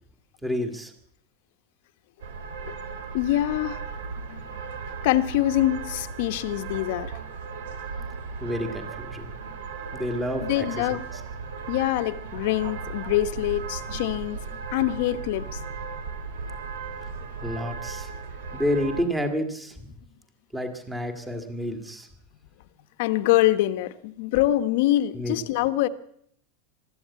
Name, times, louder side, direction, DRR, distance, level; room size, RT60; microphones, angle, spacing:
voice 1, 0.4-0.9 8.4-9.3 9.9-10.7 11.1-11.2 17.4-18.1 18.5-19.9 20.5-22.1 25.1-25.4, equal, 5° right, 6 dB, 1.8 m, -29 dB
sound 1, 2.2-19.0, right 5 dB, 80° right, 3.4 m, -36 dB
voice 2, 3.1-3.8 4.2-4.4 5.0-7.2 10.4-11.0 11.7-14.4 14.7-15.6 23.0-25.9, left 14 dB, 55° left, 11 dB, 1.1 m, -24 dB
23.0 x 14.0 x 8.4 m, 0.69 s
supercardioid pair, 175°, 0 cm